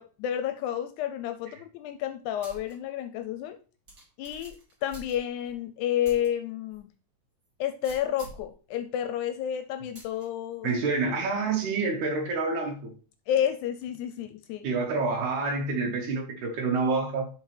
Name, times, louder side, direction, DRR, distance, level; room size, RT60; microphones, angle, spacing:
voice 1, 0.0-3.6 4.2-4.6 4.8-6.9 7.6-10.7 13.3-14.7, left 10 dB, 80° left, 1.9 m, -30 dB
sound 1, 2.4-2.7 3.2-3.3 3.9-5.5 6.0-6.3 6.7-6.8 7.8-8.5 9.9-10.2, right 2 dB, 35° right, 2.5 m, -47 dB
voice 2, 10.6-12.9 14.6-17.3, right 4 dB, 75° right, 2.5 m, -28 dB
7.1 x 5.3 x 3.2 m
omnidirectional pair, 3.5 m